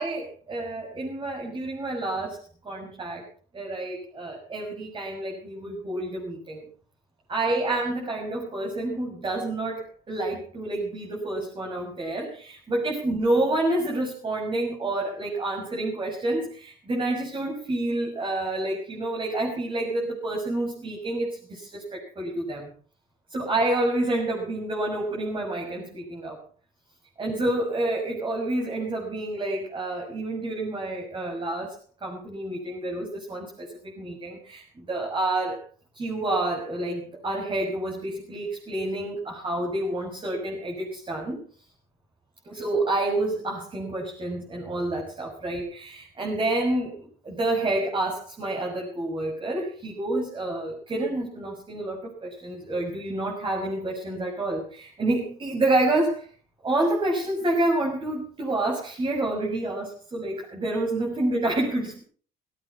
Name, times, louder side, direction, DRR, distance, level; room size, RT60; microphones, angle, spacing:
voice 1, 0.0-2.4 2.6-3.2 3.5-6.6 7.3-22.7 23.3-26.4 27.2-35.6 35.9-41.4 42.4-56.3 56.6-62.0, right 2 dB, 30° right, -1 dB, 6.5 m, -28 dB
17.5 x 17.0 x 4.7 m, 0.42 s
cardioid pair, 110°, 17 cm